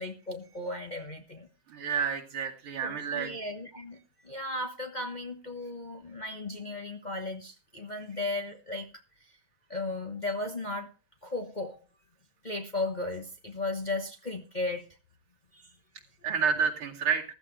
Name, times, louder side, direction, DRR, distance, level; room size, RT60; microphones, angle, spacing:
voice 1, 0.0-1.5 2.8-8.9 9.2-9.3 9.7-10.9 11.2-11.8 12.4-14.9 15.5-15.7 16.5-16.6, left 2 dB, 30° left, 5 dB, 0.9 m, -36 dB
voice 2, 1.7-3.3 16.2-17.2, right 6 dB, 85° right, 1 dB, 3.2 m, -29 dB
15.0 x 14.0 x 3.2 m, 0.30 s
omnidirectional pair, 2.3 m